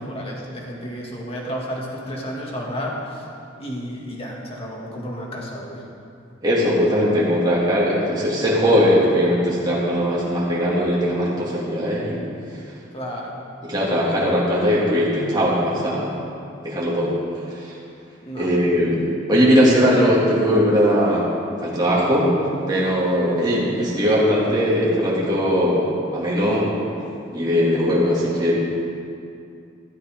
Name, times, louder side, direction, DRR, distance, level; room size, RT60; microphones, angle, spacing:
voice 1, 0.0-3.2 3.6-5.8 12.9-13.4 18.2-18.5, equal, 30° left, -2 dB, 2.2 m, -31 dB
voice 2, 6.4-12.3 13.6-16.2 16.6-17.2 17.5-17.8 18.4-21.3 21.6-22.3 22.7-26.7 27.3-28.5, equal, 20° right, -7 dB, 2.4 m, -19 dB
15.5 x 13.0 x 3.8 m, 2.5 s
head